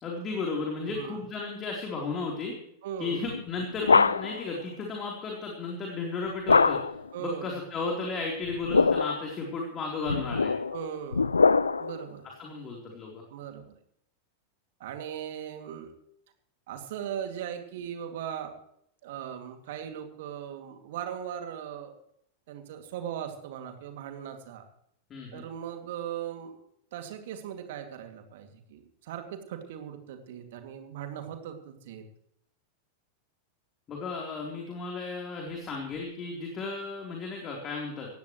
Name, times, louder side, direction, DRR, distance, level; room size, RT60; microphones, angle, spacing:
voice 1, 0.0-2.5 3.0-6.8 7.2-10.5 12.4-13.2 25.1-25.4 33.9-38.1, left 3 dB, 25° left, 0 dB, 3.8 m, -34 dB
voice 2, 0.9-1.2 2.8-3.2 7.1-7.5 10.7-11.3 11.8-12.3 13.3-13.7 14.8-15.9 16.7-18.5 19.0-22.0 22.5-24.6 25.3-26.6 26.9-32.0, right 9 dB, 55° right, 6 dB, 2.5 m, -38 dB
sound 1, 3.3-4.5 6.5-7.1 8.5-9.3 10.1-12.0, left 4 dB, 75° left, 0.4 m, -23 dB
19.0 x 15.5 x 3.2 m, 0.72 s
figure-of-eight pair, 90°, 0 cm